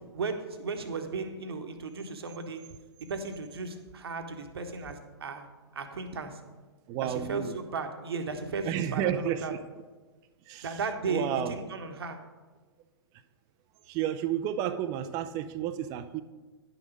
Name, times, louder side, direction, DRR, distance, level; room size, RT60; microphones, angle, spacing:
voice 1, 0.1-2.6 3.1-5.5 5.7-6.4 7.0-9.5 10.6-12.2, right 4 dB, 65° right, 6 dB, 1.2 m, -35 dB
voice 2, 6.9-7.5 8.6-9.6 10.5-10.8 11.1-11.5 13.9-16.2, right 10 dB, 25° right, 11 dB, 0.5 m, -31 dB
10.5 x 6.1 x 5.1 m, 1.3 s
figure-of-eight pair, 115°, 14 cm